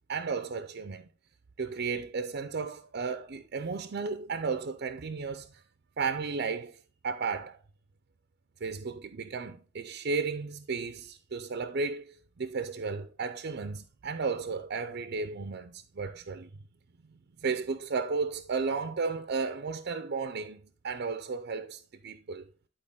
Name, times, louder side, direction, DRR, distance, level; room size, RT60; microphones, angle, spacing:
voice 1, 0.1-1.1 1.6-5.6 6.0-6.8 7.0-7.6 8.6-16.5 17.4-22.4, right 4 dB, 50° right, 0.5 m, -34 dB
11.0 x 4.6 x 3.5 m
head